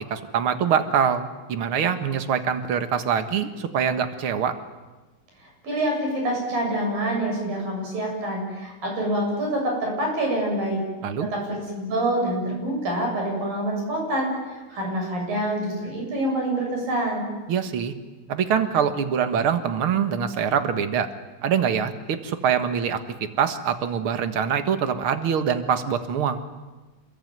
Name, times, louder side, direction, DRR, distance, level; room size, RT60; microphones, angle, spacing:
voice 1, 0.1-4.5 11.0-11.3 17.5-17.9 18.3-21.1 21.4-26.4, right 7 dB, 50° right, 9 dB, 2.1 m, -24 dB
voice 2, 5.4-10.8 11.2-17.2, right 1 dB, 80° right, 0 dB, 9.6 m, -26 dB
28.0 x 22.5 x 9.5 m, 1.2 s
omnidirectional pair, 3.9 m